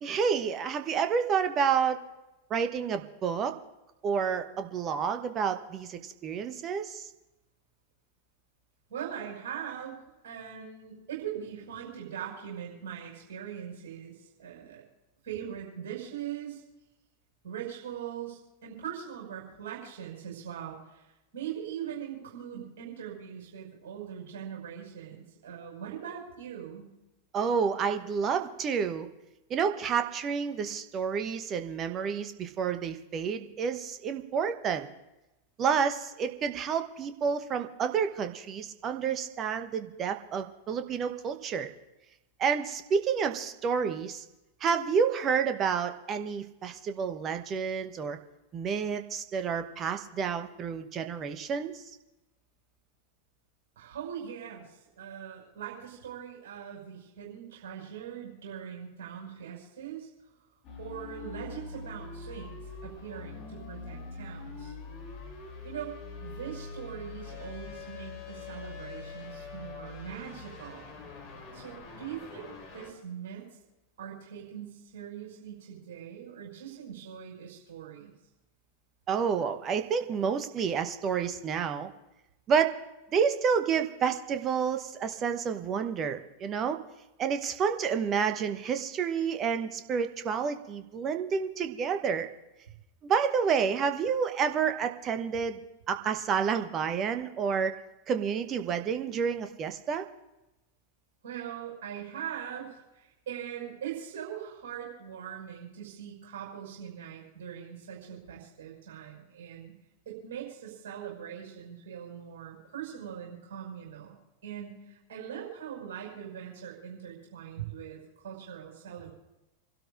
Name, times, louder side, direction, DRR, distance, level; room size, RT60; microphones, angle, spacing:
voice 1, 0.0-2.0 2.5-3.6 4.0-7.1 27.3-29.1 29.5-34.9 35.6-41.7 42.4-44.2 44.6-48.2 48.5-51.8 79.1-81.9 82.5-82.7 83.1-86.8 87.2-92.3 93.0-95.6 95.9-97.8 98.1-100.0, right 6 dB, 30° right, 8 dB, 1.0 m, -29 dB
voice 2, 8.9-10.0 10.2-14.8 15.2-16.6 17.4-26.9 53.8-60.1 60.8-62.6 62.8-64.7 65.6-65.9 66.2-71.0 71.5-73.4 74.0-78.1 101.2-109.7 110.1-119.1, right 9 dB, 55° right, -3 dB, 5.7 m, -41 dB
sound 1, 60.6-72.9, left 4 dB, 40° left, 3.1 m, -43 dB
29.0 x 12.5 x 2.5 m, 0.98 s
figure-of-eight pair, 90°, 0 cm